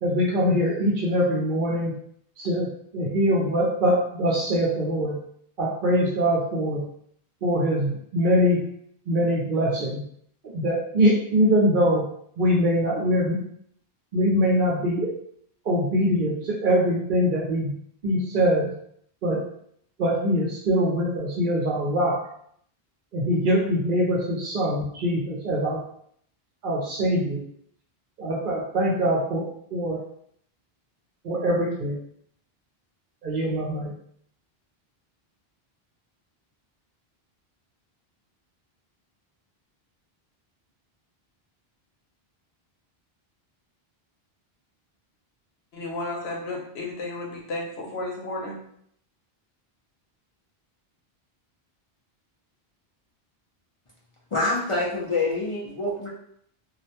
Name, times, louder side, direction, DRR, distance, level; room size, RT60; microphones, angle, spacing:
voice 1, 0.0-2.0 2.4-5.2 5.6-6.8 7.4-8.6 9.1-10.0 10.5-12.1 12.4-13.4 14.1-15.1 15.6-17.7 18.0-18.7 19.2-19.4 20.0-22.2 23.1-25.8 26.6-27.4 28.2-30.0 31.2-32.0 33.2-33.9, equal, 60° right, -2 dB, 0.8 m, -23 dB
voice 2, 45.7-48.6, left 2 dB, 90° left, -1 dB, 0.9 m, -33 dB
voice 3, 54.3-56.1, left 2 dB, 45° left, -5 dB, 0.4 m, -26 dB
2.4 x 2.1 x 2.7 m, 0.67 s
omnidirectional pair, 1.0 m